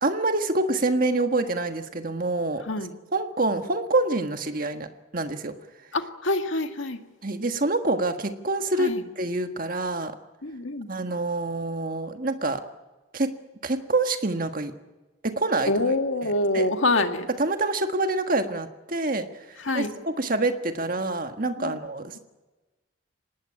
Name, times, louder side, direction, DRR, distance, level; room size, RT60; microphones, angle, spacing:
voice 1, 0.0-2.6 3.1-5.6 7.2-10.1 10.9-12.6 13.1-13.3 13.6-14.7 15.2-15.7 16.5-16.6 17.4-22.2, right 2 dB, 45° right, 6 dB, 1.6 m, -26 dB
voice 2, 5.9-7.0 8.8-9.0 10.4-10.9 15.7-17.3 19.6-19.9 21.6-21.8, left 2 dB, 75° left, 6 dB, 2.0 m, -25 dB
25.0 x 19.0 x 9.9 m, 1.2 s
head